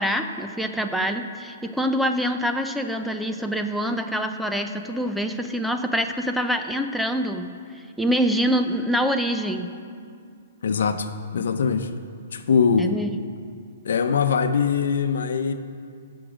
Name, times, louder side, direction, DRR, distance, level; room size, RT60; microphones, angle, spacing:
voice 1, 0.0-7.5 8.0-9.7 12.8-13.1, equal, ahead, 6 dB, 0.5 m, -25 dB
voice 2, 10.6-11.9 12.3-12.9 13.8-15.5, left 6 dB, 75° left, 9 dB, 0.8 m, -22 dB
16.5 x 6.3 x 5.0 m, 2.2 s
hypercardioid pair, 150°, 0 cm